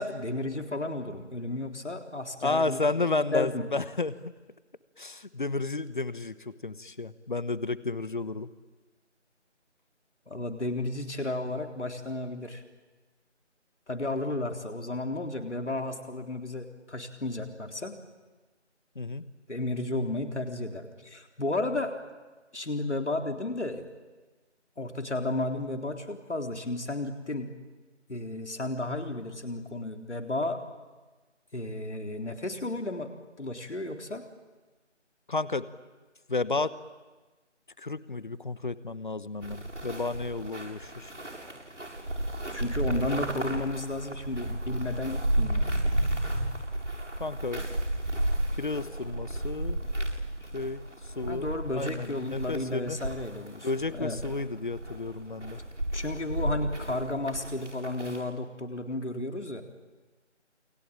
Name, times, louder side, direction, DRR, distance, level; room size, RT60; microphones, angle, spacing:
voice 1, 0.0-2.8 3.3-3.6 10.3-12.6 13.9-17.9 19.5-21.9 22.5-23.9 24.8-27.5 28.1-30.6 31.5-33.1 33.4-34.2 42.5-45.7 51.3-54.2 55.9-59.6, left 2 dB, 70° left, 4 dB, 3.9 m, -33 dB
voice 2, 2.4-4.3 5.0-8.5 18.9-19.2 35.3-35.7 36.3-36.8 37.8-41.1 47.2-47.6 48.6-49.8 50.5-50.8 51.2-53.0 53.6-55.6, left 3 dB, 45° left, 16 dB, 1.1 m, -32 dB
sound 1, 39.4-58.2, right 1 dB, 85° right, 7.8 m, -33 dB
29.0 x 23.0 x 9.0 m, 1.2 s
figure-of-eight pair, 165°, 36 cm